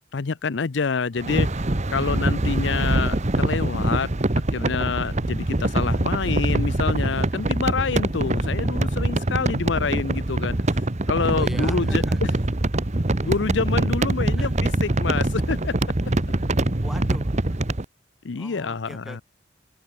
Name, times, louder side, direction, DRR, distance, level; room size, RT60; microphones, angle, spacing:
voice 1, 0.1-1.6 1.9-4.1 4.5-10.6 11.1-12.0 13.2-15.8 18.2-19.2, left 5 dB, 70° left, 0.6 m, -27 dB
sound 1, 1.2-17.9, right 1 dB, 40° right, 1.2 m, -24 dB
voice 2, 11.3-12.3 14.4-14.5 16.8-17.3 18.4-19.2, equal, ahead, 6.7 m, -40 dB
open air
head